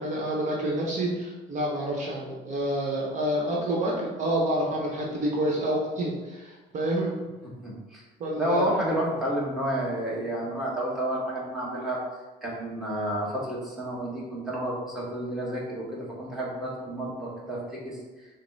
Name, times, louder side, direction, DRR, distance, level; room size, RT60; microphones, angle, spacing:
voice 1, 0.0-7.2 8.2-8.8, right 1 dB, 45° right, -3 dB, 0.9 m, -28 dB
voice 2, 7.6-8.0 8.4-12.0 12.4-17.6 17.8-18.0, right 1 dB, ahead, -6 dB, 1.4 m, -30 dB
5.2 x 2.1 x 3.9 m, 1.2 s
cardioid pair, 110°, 17 cm